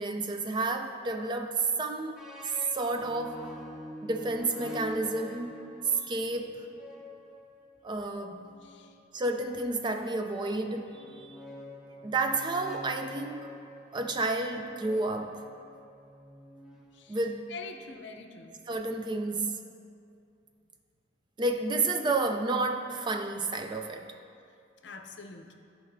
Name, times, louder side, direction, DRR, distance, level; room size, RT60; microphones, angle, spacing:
voice 1, 0.0-2.2 2.7-3.5 4.0-5.6 5.9-6.7 7.8-8.5 9.1-11.4 12.0-13.5 13.9-15.4 17.1-17.5 18.7-19.6 21.4-24.1, right 2 dB, 25° right, 6 dB, 0.3 m, -31 dB
sound 1, 2.2-8.9 9.9-17.3, equal, 5° right, 0.7 m, -47 dB
voice 2, 17.5-18.5 24.8-25.5, left 4 dB, 65° left, 4 dB, 0.6 m, -44 dB
14.0 x 5.1 x 2.6 m, 2.4 s
head